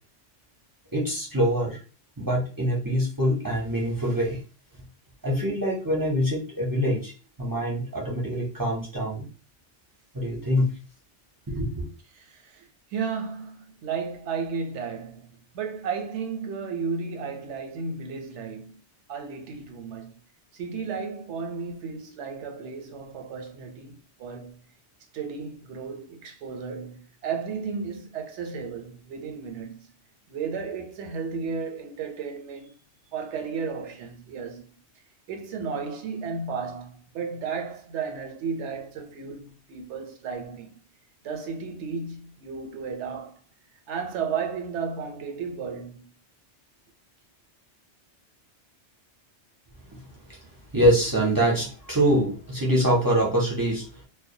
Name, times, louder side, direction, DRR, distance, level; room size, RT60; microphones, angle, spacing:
voice 1, 0.9-1.8 2.2-4.4 5.2-7.1 7.4-9.2 10.1-10.7 11.5-11.9 49.9-50.0 50.7-53.9, equal, 25° right, 0.4 m, -24 dB
voice 2, 12.1-12.7 12.9-15.3 15.5-18.8 19.1-20.1 20.5-24.6 25.1-29.8 30.3-32.7 33.1-34.7 35.3-40.8 41.2-43.4 43.9-46.1, right 5 dB, 80° right, 0.9 m, -33 dB
2.2 x 2.1 x 2.6 m
omnidirectional pair, 1.2 m